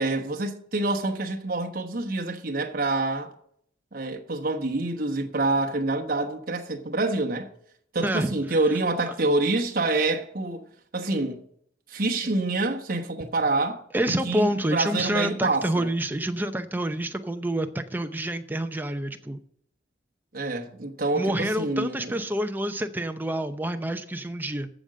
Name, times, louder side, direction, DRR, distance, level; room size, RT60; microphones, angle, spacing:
voice 1, 0.0-3.3 3.9-7.5 7.9-10.7 10.9-11.4 11.9-13.8 14.1-15.9 20.3-22.1, right 2 dB, 50° right, 1.0 m, -27 dB
voice 2, 8.0-8.6 13.9-19.4 21.1-24.7, right 1 dB, 10° right, 0.7 m, -28 dB
14.0 x 5.1 x 7.5 m
head